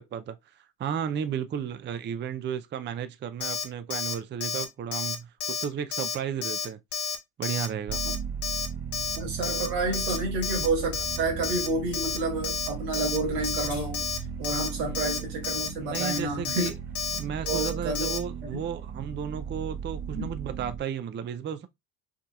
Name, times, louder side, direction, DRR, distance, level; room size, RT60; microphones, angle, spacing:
voice 1, 0.0-6.8 7.4-8.0 14.9-15.2 15.8-16.8 17.1-21.7, right 8 dB, 25° right, 0.4 m, -34 dB
Alarm, 3.4-3.6 3.9-4.1 4.4-4.6 4.9-5.2 5.4-5.6 5.9-6.1 6.4-6.7 6.9-7.2 7.4-7.7 7.9-8.2 8.4-8.7 8.9-9.2 9.4-9.7 9.9-10.2 10.4-10.7 10.9-11.2 11.4-11.7 11.9-12.2 12.4-12.7 12.9-13.2 13.4-13.7 13.9-14.2 14.4-14.7 14.9-15.2 15.4-15.7 15.9-16.2 16.4-16.7 17.0-17.2 17.5-17.7 17.9-18.2, left 6 dB, 55° left, 1.2 m, -31 dB
sound 1, 7.9-20.8, right 7 dB, 55° right, 1.1 m, -36 dB
voice 2, 9.2-14.1 14.4-16.7 17.4-18.2 18.5-18.6 20.1-20.3, right 2 dB, 90° right, 1.6 m, -30 dB
sound 2, 9.6-9.7 10.1-10.2 13.2-13.9, left 5 dB, 90° left, 1.6 m, -44 dB
4.8 x 2.7 x 2.3 m
hypercardioid pair, 60°, 47 cm